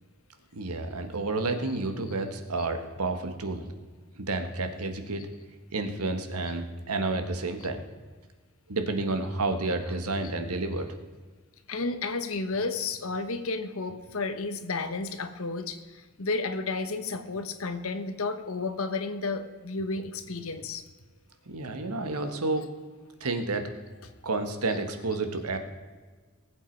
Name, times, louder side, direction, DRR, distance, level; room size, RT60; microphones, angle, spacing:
voice 1, 0.5-3.6 4.2-5.2 5.7-7.8 8.7-10.9 21.5-22.7 23.2-23.7 24.2-25.6, right 2 dB, 90° right, 7 dB, 1.5 m, -30 dB
voice 2, 11.7-20.8, left 3 dB, 70° left, 9 dB, 1.1 m, -32 dB
19.5 x 8.3 x 4.6 m, 1.4 s
head